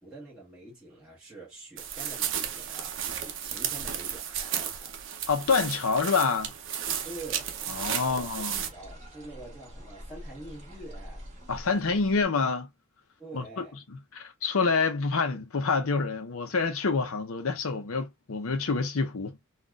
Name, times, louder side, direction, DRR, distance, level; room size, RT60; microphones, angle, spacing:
voice 1, 0.0-5.0 7.0-7.5 8.0-11.3 13.2-13.8, right 2 dB, 5° right, 1.3 m, -45 dB
sound 1, 1.8-8.7, right 9 dB, 60° right, 0.6 m, -33 dB
voice 2, 5.3-6.5 7.7-8.6 11.5-12.7 13.3-19.4, left 4 dB, 80° left, 0.7 m, -27 dB
sound 2, 6.8-12.2, equal, 35° right, 1.7 m, -46 dB
4.0 x 2.4 x 2.3 m
head